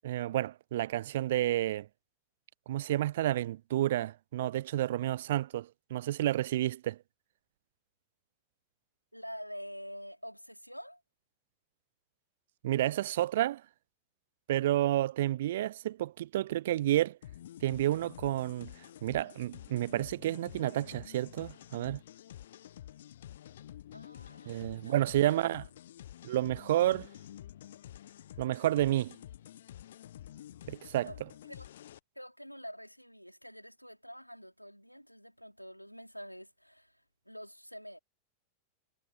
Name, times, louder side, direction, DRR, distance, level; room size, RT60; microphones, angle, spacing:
voice 1, 0.0-1.9 2.7-7.0 12.6-13.6 14.5-17.2 17.6-18.7 19.0-22.0 24.5-25.6 26.2-27.1 28.4-29.2 30.7-31.1, right 13 dB, 55° right, 0.5 m, -30 dB
voice 2, 9.1-11.0 23.9-25.5 31.0-31.2 31.5-31.7 32.1-38.0, equal, 90° left, 4.4 m, -47 dB
sound 1, 17.2-32.0, left 12 dB, 60° left, 0.9 m, -50 dB
figure-of-eight pair, 90°, 0 cm